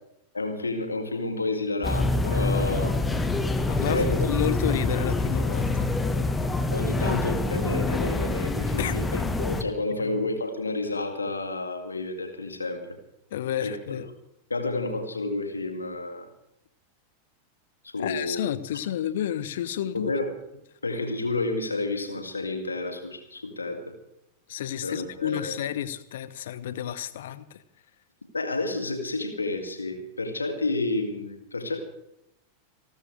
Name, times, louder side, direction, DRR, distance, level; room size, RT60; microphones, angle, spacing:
voice 1, 0.3-3.0 3.9-4.3 6.7-12.8 13.6-13.8 14.5-16.3 17.8-18.4 19.9-20.3 20.8-23.9 24.8-25.6 28.3-31.8, left 2 dB, 80° left, 5 dB, 2.6 m, -30 dB
sound 1, 1.8-9.6, left 2 dB, 10° left, 1.3 m, -26 dB
voice 2, 3.7-5.9 8.8-9.0 10.0-10.2 13.3-14.1 18.0-20.1 24.5-27.6, left 11 dB, 60° left, 15 dB, 1.1 m, -31 dB
28.5 x 12.5 x 3.5 m, 0.82 s
figure-of-eight pair, 90°, 0 cm